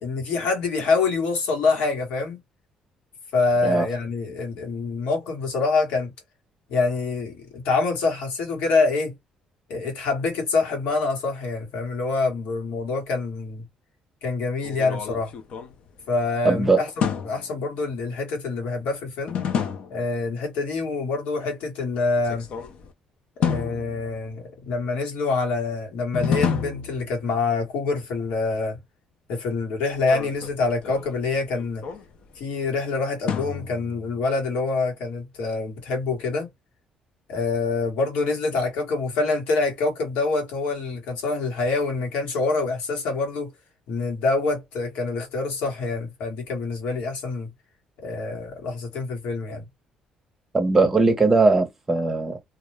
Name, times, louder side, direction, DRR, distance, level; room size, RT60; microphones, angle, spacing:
voice 1, 0.0-2.4 3.3-6.1 6.7-9.1 9.7-13.6 14.2-15.3 16.1-19.4 19.9-22.5 23.4-28.8 29.3-31.8 32.4-36.5 37.3-43.5 43.9-47.5 48.0-49.6, left 3 dB, 90° left, 1.2 m, -26 dB
sound 1, 14.6-16.4 17.0-17.6 19.3-20.1 22.2-22.9 23.4-24.5 26.1-27.5 29.9-32.4 33.3-34.2, left 7 dB, 55° left, 0.5 m, -30 dB
voice 2, 16.4-16.8 50.5-52.4, right 3 dB, 15° right, 0.6 m, -19 dB
2.3 x 2.0 x 3.0 m
cardioid pair, 150°, 2 cm